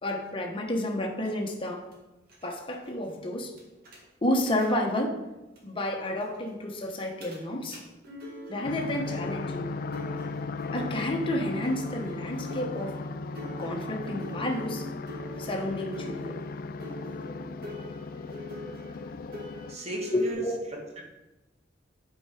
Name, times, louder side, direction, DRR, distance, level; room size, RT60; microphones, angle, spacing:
voice 1, 0.0-1.9 2.4-3.5 4.2-5.2 5.6-7.8 8.5-9.8 10.7-13.0 13.6-14.9 15.4-16.5 17.4-17.5 20.1-20.6, left 1 dB, 30° left, 1 dB, 1.1 m, -30 dB
sound 1, 1.2-1.3 1.9-2.0 2.3-2.5 2.7-2.9 3.6-4.0 4.5-4.7 5.6-5.7 5.9-6.0 6.2-6.4 7.2-7.4 7.7-7.8 8.0-20.3, equal, 55° right, 2.0 m, -43 dB
sound 2, 8.6-19.8, left 3 dB, 50° left, 0.3 m, -37 dB
voice 2, 19.7-20.4 20.7-21.0, right 1 dB, 35° right, -1 dB, 1.7 m, -36 dB
8.6 x 4.7 x 4.9 m, 1.0 s
head